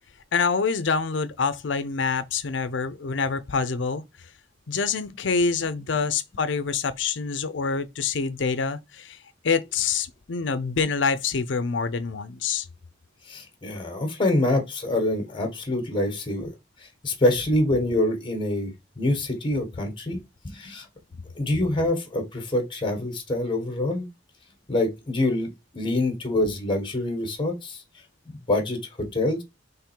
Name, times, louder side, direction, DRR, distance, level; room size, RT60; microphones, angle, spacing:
voice 1, 0.3-4.0 4.7-9.2 9.4-12.7, left 5 dB, 75° left, 0.6 m, -26 dB
voice 2, 13.3-16.5 16.8-20.2 20.4-20.9 21.3-24.1 24.7-27.8 28.3-29.4, left 1 dB, 25° left, 1.3 m, -26 dB
3.6 x 3.2 x 4.5 m
head